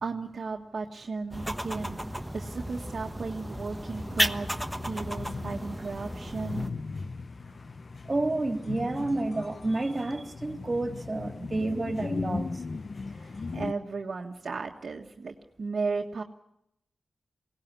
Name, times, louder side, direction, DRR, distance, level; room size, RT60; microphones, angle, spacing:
voice 1, 0.0-2.0 2.3-6.7 13.1-16.2, right 4 dB, 60° right, 1 dB, 1.5 m, -35 dB
sound 1, 1.3-6.7, equal, 5° right, 1.2 m, -33 dB
sound 2, 3.7-13.7, left 4 dB, 50° left, 0.8 m, -38 dB
voice 2, 8.0-12.6, right 2 dB, 30° right, 5 dB, 3.2 m, -30 dB
22.5 x 18.0 x 9.6 m, 0.80 s
cardioid pair, 75°, 0 cm